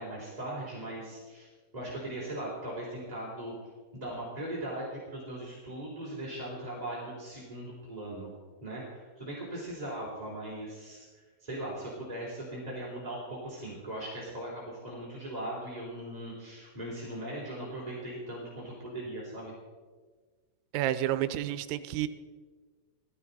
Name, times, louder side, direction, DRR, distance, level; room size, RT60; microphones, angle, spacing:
voice 1, 0.0-3.5 3.9-8.3 8.6-11.0 11.4-19.5, right 1 dB, 10° right, -7 dB, 2.5 m, -39 dB
voice 2, 20.7-22.1, right 13 dB, 85° right, 12 dB, 3.2 m, -30 dB
18.0 x 15.0 x 4.1 m, 1.4 s
omnidirectional pair, 5.8 m